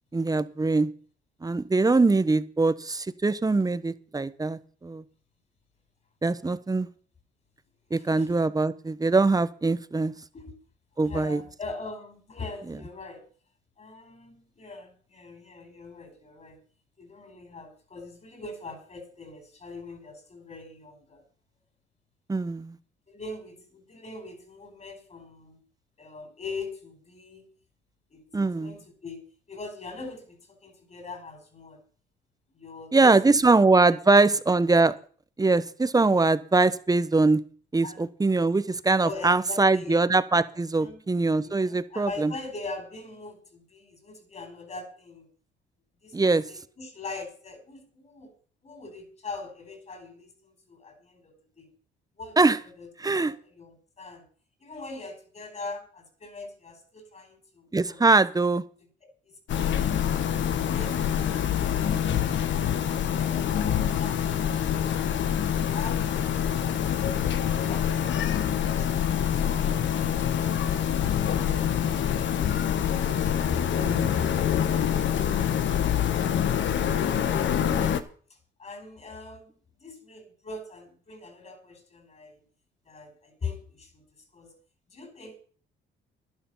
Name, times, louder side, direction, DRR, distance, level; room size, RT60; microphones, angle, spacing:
voice 1, 0.1-0.9 1.4-5.0 6.2-6.9 7.9-10.1 11.0-11.4 22.3-22.8 28.3-28.7 32.9-34.9 35.4-37.4 37.7-42.3 46.1-46.4 52.4-52.6 53.0-53.3 57.7-58.6 73.8-74.2, right 3 dB, 20° right, 14 dB, 1.0 m, -22 dB
voice 2, 8.0-8.3 10.3-10.5 11.0-13.3 13.8-16.6 17.0-21.2 23.1-25.6 26.0-27.5 28.1-31.8 32.5-33.2 33.6-33.7 37.8-38.1 39.0-40.1 40.8-41.0 41.4-45.3 46.0-48.3 48.6-51.7 52.2-52.9 53.1-54.3 54.6-58.2 59.2-60.0 60.6-61.0 61.2-62.0 62.5-66.9 67.5-68.3 78.6-82.5 82.9-84.5 84.9-85.4, left 3 dB, 40° left, 4 dB, 4.6 m, -42 dB
sound 1, 59.5-78.0, left 9 dB, 70° left, 1.4 m, -25 dB
11.5 x 11.5 x 5.6 m, 0.43 s
cardioid pair, 90°, 20 cm